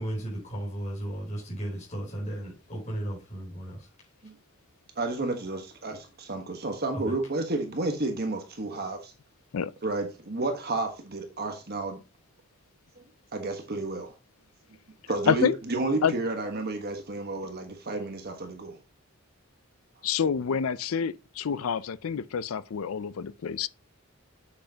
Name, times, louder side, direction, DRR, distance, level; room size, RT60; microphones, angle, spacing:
voice 1, 0.0-3.9 7.0-7.1, right 1 dB, 35° left, 3.8 m, -35 dB
voice 2, 5.0-9.1 9.8-12.0 13.0-13.1 13.3-14.1 15.1-18.8, right 2 dB, 45° right, 1.3 m, -31 dB
voice 3, 15.3-15.6 16.0-16.1 20.0-23.7, left 6 dB, 75° left, 0.4 m, -27 dB
7.7 x 6.8 x 2.9 m
head